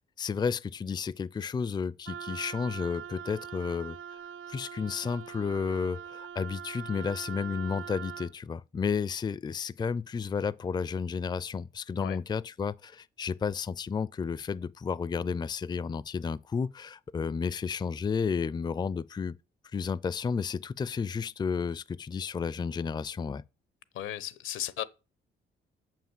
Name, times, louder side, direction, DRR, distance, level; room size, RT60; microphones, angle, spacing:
voice 1, 0.2-4.0 4.5-19.4 19.7-23.4, left 5 dB, 20° left, 0.4 m, -32 dB
Wind instrument woodwind instrument, 2.1-8.3, right 8 dB, 85° right, 0.5 m, -42 dB
voice 2, 23.9-24.8, left 12 dB, 85° left, 0.9 m, -35 dB
7.1 x 5.9 x 7.3 m
cardioid pair, 90°, 20 cm